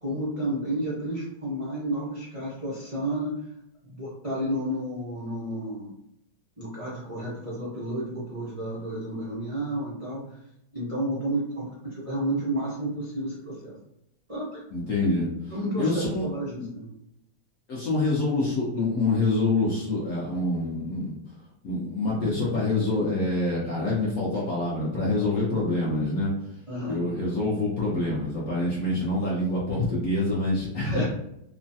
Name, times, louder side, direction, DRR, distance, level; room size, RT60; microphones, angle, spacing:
voice 1, 0.0-3.3 3.8-5.9 6.6-10.4 10.7-13.7 14.3-14.6 15.0-16.9 26.7-27.0 30.8-31.1, right 1 dB, 50° right, -8 dB, 0.4 m, -31 dB
voice 2, 14.7-15.3 15.8-16.2 16.6-16.7 17.7-21.1 21.6-26.3 26.8-31.1, left 2 dB, 65° left, -5 dB, 0.8 m, -26 dB
3.1 x 2.2 x 2.6 m, 0.80 s
omnidirectional pair, 2.0 m